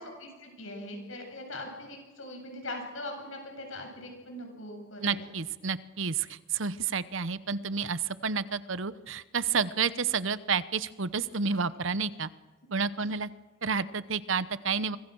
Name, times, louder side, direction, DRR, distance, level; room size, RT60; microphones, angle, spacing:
voice 1, 0.0-5.3, left 1 dB, 75° left, 3 dB, 7.8 m, -41 dB
voice 2, 5.0-12.3 12.7-13.3 13.6-15.0, right 5 dB, 70° right, 15 dB, 0.9 m, -30 dB
25.0 x 22.5 x 6.3 m, 1.3 s
head